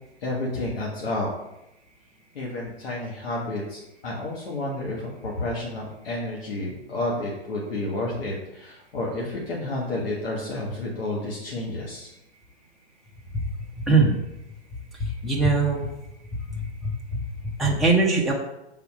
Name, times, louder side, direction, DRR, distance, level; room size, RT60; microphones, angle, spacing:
voice 1, 0.2-1.3 2.3-12.1, left 2 dB, 60° left, -4 dB, 1.5 m, -30 dB
voice 2, 13.8-14.2 15.0-15.9 16.5-18.3, right 3 dB, ahead, -4 dB, 0.6 m, -22 dB
5.8 x 4.1 x 4.8 m, 0.87 s
figure-of-eight pair, 115°, 33 cm